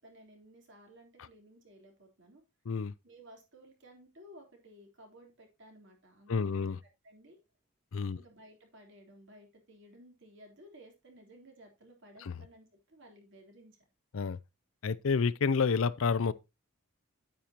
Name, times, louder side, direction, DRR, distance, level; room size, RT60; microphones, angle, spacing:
voice 1, 0.0-2.4 3.0-6.7 7.0-7.4 8.1-13.8, right 1 dB, 55° right, 3.6 m, -56 dB
voice 2, 6.3-6.8 7.9-8.2 12.2-12.3 14.1-14.4 14.8-16.3, left 5 dB, 65° left, 0.5 m, -29 dB
9.3 x 8.8 x 2.9 m
head